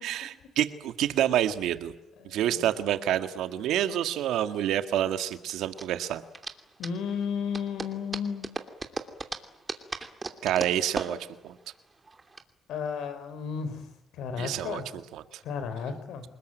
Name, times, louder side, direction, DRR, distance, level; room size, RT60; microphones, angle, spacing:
voice 1, 0.0-1.9 2.2-6.2 10.4-11.2 11.4-11.5 14.4-15.4, right 11 dB, 85° right, 10 dB, 1.8 m, -28 dB
voice 2, 2.2-2.7 6.8-8.5 12.7-13.8 14.2-14.8 15.4-16.2, left 6 dB, 85° left, 10 dB, 4.6 m, -33 dB
sound 1, 3.5-12.4, right 3 dB, 25° right, 2.8 m, -39 dB
28.5 x 20.5 x 9.2 m, 0.87 s
cardioid pair, 90°, 0 cm